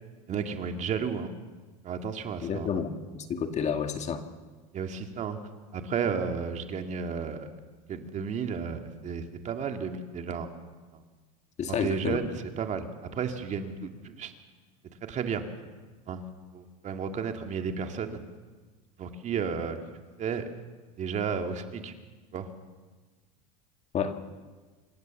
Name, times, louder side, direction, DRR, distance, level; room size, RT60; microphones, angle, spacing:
voice 1, 0.3-1.3 1.8-2.8 4.7-5.4 5.7-7.5 7.9-10.5 11.7-14.3 15.1-15.4 16.1-16.2 16.5-18.2 19.0-19.8 20.2-20.5 21.0-21.9 22.3-22.5, right 6 dB, 40° right, 6 dB, 2.1 m, -33 dB
voice 2, 2.4-4.2 11.6-12.2 23.9-24.2, left 6 dB, 35° left, 7 dB, 2.0 m, -30 dB
26.5 x 15.0 x 7.2 m, 1.3 s
supercardioid pair, 100°, 19 cm